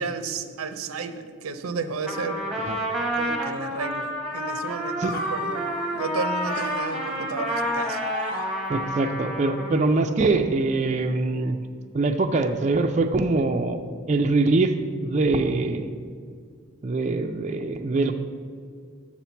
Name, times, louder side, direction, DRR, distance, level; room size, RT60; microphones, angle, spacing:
voice 1, 0.0-2.5 3.2-5.6 5.9-8.0, right 4 dB, 90° right, 9 dB, 0.6 m, -32 dB
Trumpet, 2.0-9.9, equal, ahead, 0.9 m, -29 dB
sound 1, 5.0-9.2, left 2 dB, 45° left, 0.8 m, -36 dB
voice 2, 8.7-11.6 11.9-13.8 14.1-14.7 15.0-15.9 16.8-18.1, right 3 dB, 35° right, 5 dB, 0.3 m, -23 dB
7.3 x 4.4 x 7.0 m, 2.1 s
head